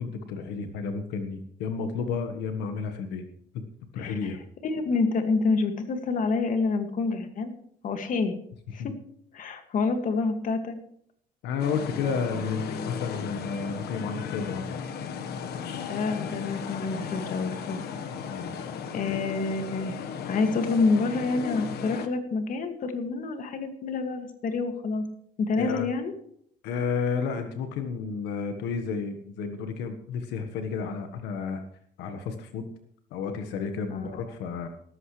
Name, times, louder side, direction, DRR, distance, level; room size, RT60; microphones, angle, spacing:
voice 1, 0.0-3.3 3.9-4.4 8.8-8.9 11.4-14.7 18.3-18.7 19.0-19.2 25.6-25.9 26.6-31.6 32.0-32.7 33.1-34.7, left 5 dB, 85° left, 7 dB, 1.5 m, -31 dB
voice 2, 4.0-4.4 4.6-7.5 7.8-8.3 8.7-8.9 9.3-10.8 12.5-13.4 15.9-17.8 18.9-19.9 20.3-25.0 25.4-26.1 33.9-34.1, left 4 dB, 50° left, 6 dB, 2.2 m, -28 dB
sound 1, 11.6-22.1, left 7 dB, 70° left, 1.4 m, -36 dB
17.5 x 14.5 x 3.3 m, 0.67 s
cardioid pair, 110°, 17 cm